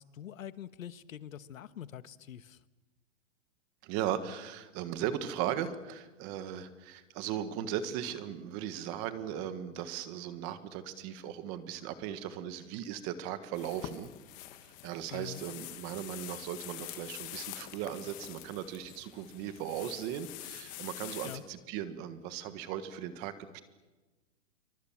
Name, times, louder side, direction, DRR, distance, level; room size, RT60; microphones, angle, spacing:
voice 1, 0.0-2.6 15.1-15.4 21.2-21.4, left 10 dB, 85° left, 14 dB, 1.4 m, -45 dB
voice 2, 3.8-14.1 14.8-23.6, right 10 dB, 25° right, 11 dB, 1.5 m, -37 dB
sound 1, 13.5-21.4, left 14 dB, 20° left, 1.2 m, -46 dB
27.0 x 24.0 x 7.4 m, 1.2 s
hypercardioid pair, 165°, 39 cm